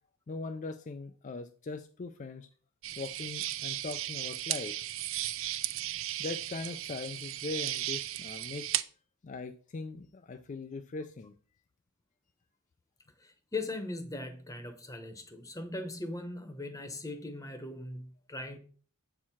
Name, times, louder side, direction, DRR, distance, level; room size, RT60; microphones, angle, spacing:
voice 1, 0.3-2.5 3.0-4.8 6.2-8.7 9.2-11.3, left 3 dB, 35° left, 0.4 m, -40 dB
sound 1, 2.8-8.8, right 14 dB, 60° right, 0.4 m, -35 dB
voice 2, 13.2-18.6, left 2 dB, 15° left, 0.9 m, -39 dB
7.4 x 4.6 x 5.7 m
head